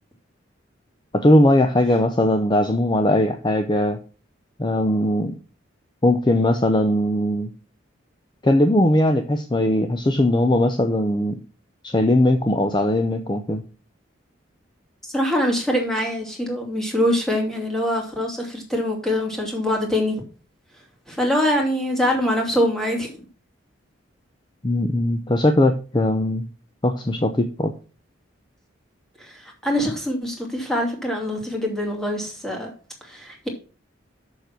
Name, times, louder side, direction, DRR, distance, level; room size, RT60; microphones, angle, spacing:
voice 1, 1.1-4.0 4.6-5.3 6.0-7.5 8.4-11.4 11.8-13.6 24.6-26.5 26.8-27.7, left 1 dB, 25° left, 0.6 m, -19 dB
voice 2, 15.0-20.2 21.1-23.1 29.2-32.7 33.0-33.5, left 1 dB, ahead, 2.5 m, -24 dB
6.8 x 6.6 x 5.9 m
head